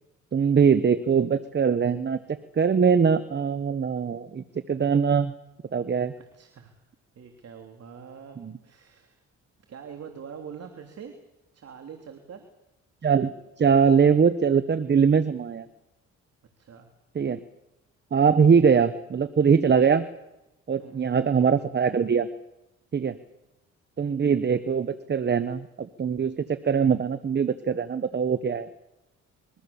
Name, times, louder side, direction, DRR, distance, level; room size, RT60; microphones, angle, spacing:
voice 1, 0.3-5.3 5.7-6.1 8.4-8.6 13.0-15.7 17.1-17.4 18.1-20.0 20.7-22.3 22.9-23.2 24.0-28.7, right 6 dB, 35° right, 13 dB, 1.1 m, -22 dB
voice 2, 6.2-6.8 7.1-8.4 8.6-9.2 9.7-11.2 11.5-12.4 16.6-16.9 20.8-21.1, right 7 dB, 55° right, 5 dB, 3.2 m, -44 dB
25.5 x 22.5 x 7.1 m, 0.93 s
cardioid pair, 90°, 30 cm